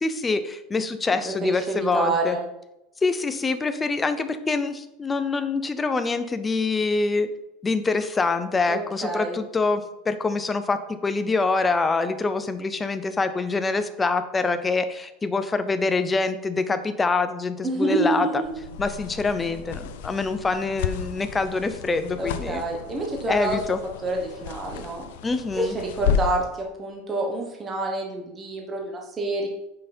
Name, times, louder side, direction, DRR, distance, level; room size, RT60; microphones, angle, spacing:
voice 1, 0.0-2.4 3.0-7.3 7.6-18.3 18.8-22.6 23.3-23.8 25.2-25.8, left 3 dB, 10° left, 10 dB, 0.5 m, -25 dB
voice 2, 1.2-2.5 8.7-9.4 17.6-18.5 22.2-23.6 24.0-25.1 25.5-29.5, right 2 dB, 15° right, 0 dB, 1.1 m, -28 dB
sound 1, 18.4-26.5, left 8 dB, 80° left, 0.7 m, -32 dB
8.6 x 5.7 x 4.3 m, 0.89 s
supercardioid pair, 175°, 0 cm